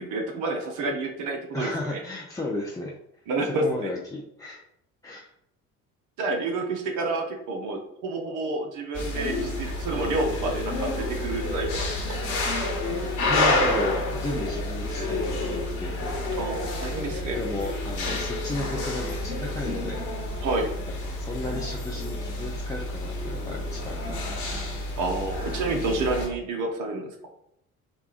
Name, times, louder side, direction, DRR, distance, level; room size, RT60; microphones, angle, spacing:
voice 1, 0.0-2.0 3.3-3.9 6.2-12.1 16.4-17.4 20.4-20.7 25.0-27.1, right 2 dB, 50° right, 2 dB, 0.9 m, -29 dB
voice 2, 1.5-3.0 3.4-4.6 5.0-5.3 13.2-16.0 17.1-20.1 20.9-24.6, left 2 dB, 10° left, -4 dB, 0.5 m, -34 dB
sound 1, 8.9-26.3, left 2 dB, 45° left, 1.2 m, -29 dB
4.9 x 2.3 x 2.5 m, 0.76 s
figure-of-eight pair, 55°, 40 cm